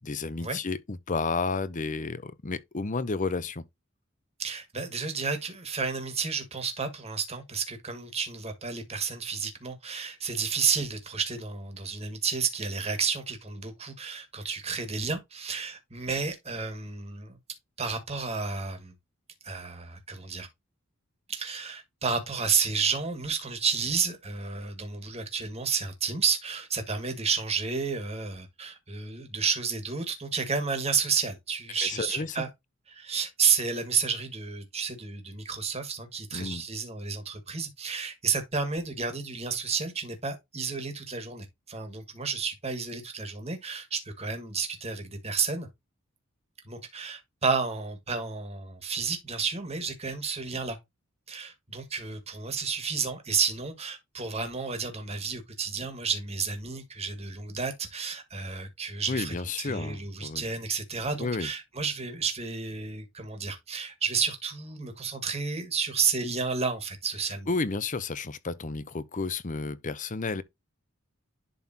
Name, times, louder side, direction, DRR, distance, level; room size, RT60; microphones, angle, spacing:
voice 1, 0.0-3.6 31.8-32.4 36.3-36.6 59.1-60.4 61.2-61.5 67.5-70.4, left 4 dB, 35° left, 0.7 m, -31 dB
voice 2, 4.4-17.4 17.8-18.9 19.4-20.5 21.3-32.5 32.9-45.7 46.7-50.8 51.3-67.5, right 5 dB, 30° right, 1.9 m, -31 dB
11.0 x 3.8 x 2.8 m
head